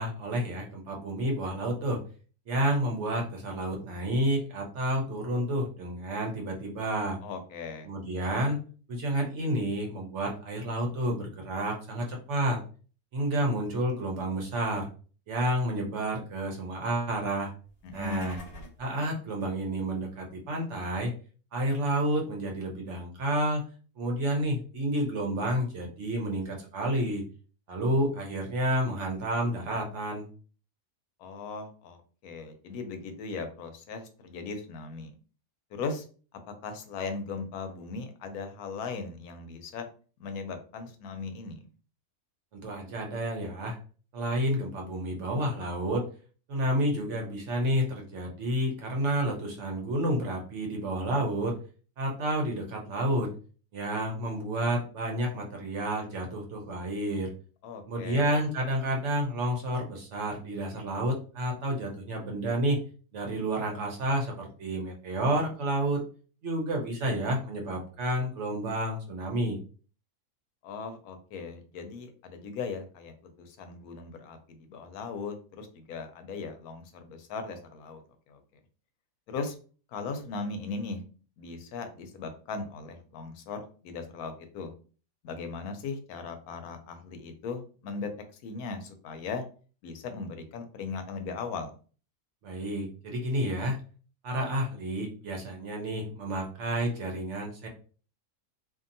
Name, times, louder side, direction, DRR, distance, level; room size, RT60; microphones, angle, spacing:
voice 1, 0.0-2.0 2.5-7.2 7.8-8.6 8.9-12.6 13.1-14.9 15.3-17.5 17.9-18.4 18.8-21.1 21.5-23.6 24.0-27.2 27.7-30.3 42.5-43.8 44.1-46.0 46.5-51.6 52.0-53.3 53.7-57.3 57.9-62.8 63.1-66.0 66.4-69.6 92.4-93.8 94.2-97.7, right 1 dB, 60° right, 1 dB, 0.9 m, -30 dB
voice 2, 7.2-7.9 17.8-18.5 31.2-35.1 35.7-36.0 36.3-39.9 40.2-41.6 57.6-58.4 70.6-78.0 78.3-78.4 79.3-79.6 79.9-81.0 81.4-84.7 85.2-88.1 88.4-89.4 89.8-91.7, left 4 dB, 90° left, 7 dB, 1.1 m, -38 dB
sound 1, 17.7-18.9, left 1 dB, 45° left, 1.0 m, -46 dB
2.7 x 2.5 x 2.6 m, 0.39 s
omnidirectional pair, 1.5 m